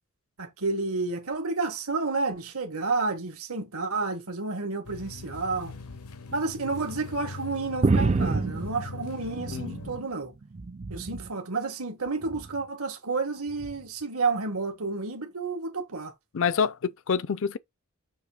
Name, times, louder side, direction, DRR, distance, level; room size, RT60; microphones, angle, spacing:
voice 1, 0.4-5.7 6.3-10.3 10.9-16.1, right 3 dB, 75° right, 1.6 m, -30 dB
sound 1, 4.8-10.0, left 3 dB, 80° left, 0.9 m, -41 dB
sound 2, 7.8-10.0 10.4-11.3 12.2-12.6 13.6-13.8, right 3 dB, 30° right, 0.4 m, -28 dB
voice 2, 16.3-17.6, left 6 dB, 60° left, 0.5 m, -27 dB
7.1 x 3.1 x 4.9 m
head